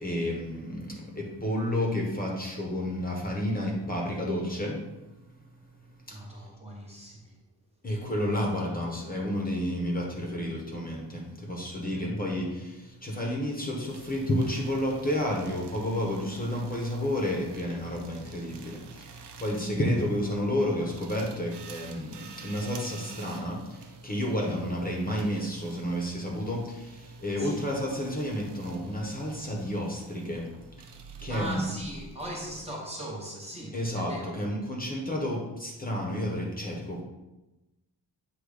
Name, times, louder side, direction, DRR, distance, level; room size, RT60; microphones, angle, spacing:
voice 1, 0.0-4.8 6.1-6.2 7.8-30.5 30.8-30.9 31.2-31.7 33.7-37.0, left 1 dB, 20° left, -1 dB, 1.1 m, -31 dB
voice 2, 6.1-7.4 11.9-12.2 24.4-24.6 27.4-27.7 31.1-34.4, right 1 dB, 15° right, -3 dB, 1.0 m, -39 dB
sound 1, 13.9-32.9, right 4 dB, 75° right, 0.7 m, -49 dB
7.9 x 3.1 x 4.9 m, 1.0 s
wide cardioid pair, 165°, 42 cm